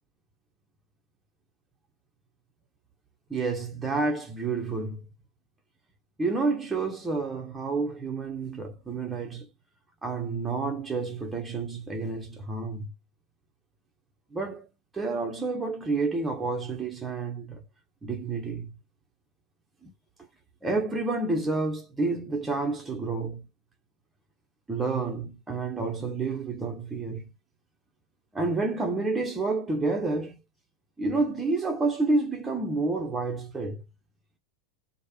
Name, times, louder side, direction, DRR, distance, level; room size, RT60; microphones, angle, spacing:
voice 1, 3.3-5.0 6.2-9.5 10.0-12.9 14.3-14.7 14.9-17.6 18.0-18.7 19.8-19.9 20.6-23.5 24.7-27.3 28.3-30.4 31.0-33.8, right 3 dB, 10° right, 0.8 m, -29 dB
3.3 x 2.1 x 3.4 m
figure-of-eight pair, 90°, 0 cm